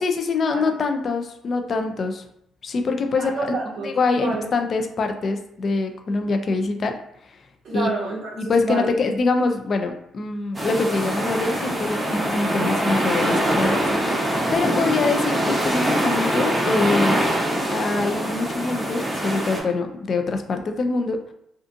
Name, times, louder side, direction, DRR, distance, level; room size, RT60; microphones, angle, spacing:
voice 1, 0.0-2.2 2.6-3.3 3.8-6.9 7.3-7.4 7.7-7.9 8.4-14.3 14.5-17.2 17.7-21.2, left 3 dB, 50° left, 6 dB, 0.4 m, -24 dB
voice 2, 3.2-3.9 4.2-4.5 7.6-8.9 14.5-15.0, right 2 dB, 60° right, -2 dB, 0.5 m, -29 dB
sound 1, 10.5-19.6, right 1 dB, 20° right, 0.7 m, -23 dB
2.5 x 2.4 x 2.5 m, 0.76 s
cardioid pair, 90°, 0 cm